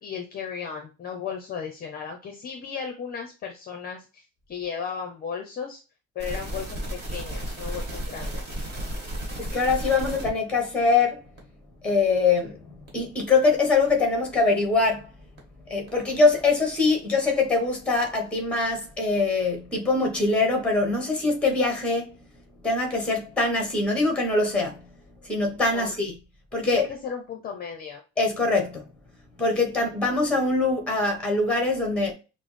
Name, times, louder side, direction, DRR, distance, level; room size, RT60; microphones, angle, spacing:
voice 1, 0.0-5.8 6.2-8.6 25.7-25.9 26.7-28.0, left 6 dB, 30° left, 0.6 m, -35 dB
sound 1, 6.2-10.4 10.9-11.0 11.4-11.5 11.9-12.0 12.4-12.5 12.9-13.0 13.4-13.5 13.9-14.0 14.4-14.5 14.9-15.0 15.4-15.5 15.9-16.0 16.4-16.5, right 1 dB, 35° right, 1.5 m, -33 dB
voice 2, 9.4-11.2 11.8-12.6 12.9-15.1 15.7-22.2 22.6-24.8 25.2-26.1 26.5-26.9 28.2-28.8 29.4-32.1, left 3 dB, 5° left, 1.0 m, -23 dB
6.0 x 2.0 x 3.1 m
cardioid pair, 180°, 29 cm